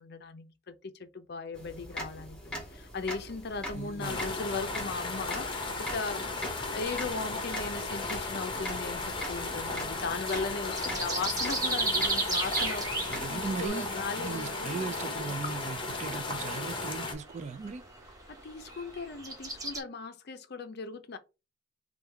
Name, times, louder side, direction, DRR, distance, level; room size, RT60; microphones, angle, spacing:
voice 1, 0.0-14.9 18.3-21.2, left 4 dB, 55° left, 0.5 m, -38 dB
sound 1, 1.5-13.7, equal, 5° left, 1.2 m, -42 dB
voice 2, 3.7-4.4 13.1-17.9, right 4 dB, 35° right, 0.3 m, -38 dB
sound 2, 4.0-17.1, left 3 dB, 25° left, 0.8 m, -35 dB
sound 3, 6.8-19.8, right 3 dB, 20° right, 0.7 m, -37 dB
3.5 x 2.3 x 4.4 m
head